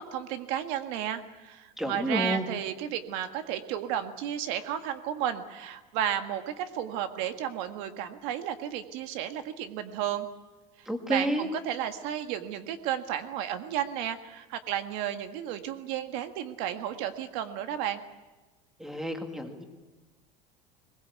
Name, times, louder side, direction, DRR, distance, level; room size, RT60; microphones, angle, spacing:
voice 1, 0.0-10.3 10.8-18.0, right 10 dB, 70° right, 8 dB, 1.7 m, -33 dB
voice 2, 1.8-2.5 10.9-11.5 18.8-19.6, right 1 dB, 5° right, 5 dB, 2.1 m, -30 dB
21.5 x 20.5 x 8.2 m, 1.2 s
cardioid pair, 165°, 18 cm